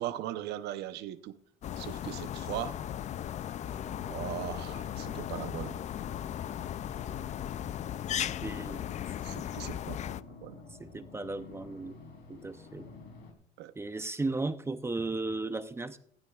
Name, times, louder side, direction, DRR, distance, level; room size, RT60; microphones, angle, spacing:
voice 1, 0.0-1.4 1.8-2.8 4.1-5.8 9.2-10.0 10.4-10.6 13.6-13.7, right 12 dB, 80° right, 0.7 m, -39 dB
sound 1, 1.6-10.2, left 11 dB, 45° left, 0.4 m, -37 dB
sound 2, 3.6-13.3, left 3 dB, 75° left, 3.3 m, -50 dB
voice 2, 8.4-8.8 10.8-12.0 12.3-12.9 13.8-16.0, right 3 dB, 15° right, 0.6 m, -35 dB
16.5 x 14.5 x 2.4 m
cardioid pair, 110°, 17 cm